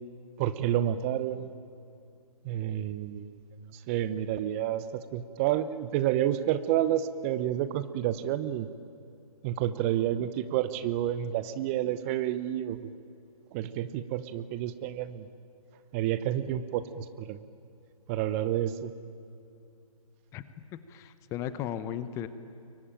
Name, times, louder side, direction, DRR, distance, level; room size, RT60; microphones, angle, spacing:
voice 1, 0.4-1.5 2.4-3.3 3.7-8.7 9.4-12.9 13.5-15.3 15.9-17.4 18.1-18.9, right 12 dB, 20° right, 14 dB, 0.8 m, -29 dB
voice 2, 20.7-22.3, left 10 dB, 15° left, 13 dB, 0.8 m, -36 dB
27.5 x 23.5 x 9.0 m, 2.6 s
figure-of-eight pair, 140°, 19 cm